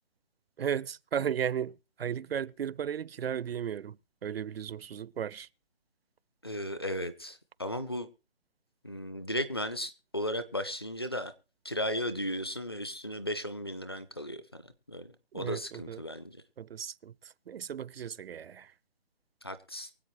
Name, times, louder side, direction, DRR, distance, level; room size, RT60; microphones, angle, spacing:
voice 1, 0.6-5.5 15.3-16.0 16.6-18.7, right 8 dB, 70° right, 0.5 m, -35 dB
voice 2, 6.4-8.1 8.8-11.3 11.6-16.4 19.4-19.9, equal, 25° left, 0.5 m, -35 dB
23.5 x 7.9 x 3.1 m
hypercardioid pair, 170°, 31 cm